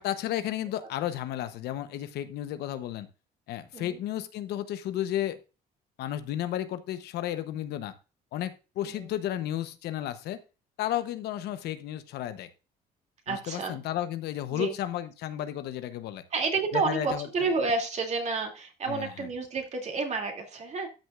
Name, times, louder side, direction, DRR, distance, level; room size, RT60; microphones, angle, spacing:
voice 1, 0.0-3.1 3.5-5.4 6.0-8.0 8.3-10.4 10.8-12.5 13.3-16.2 16.7-17.3 18.9-19.1, left 12 dB, 75° left, 11 dB, 0.9 m, -33 dB
voice 2, 13.3-13.8 14.5-14.7 16.3-20.9, right 4 dB, 40° right, 2 dB, 2.5 m, -30 dB
13.0 x 6.3 x 2.4 m, 0.30 s
cardioid pair, 110°, 17 cm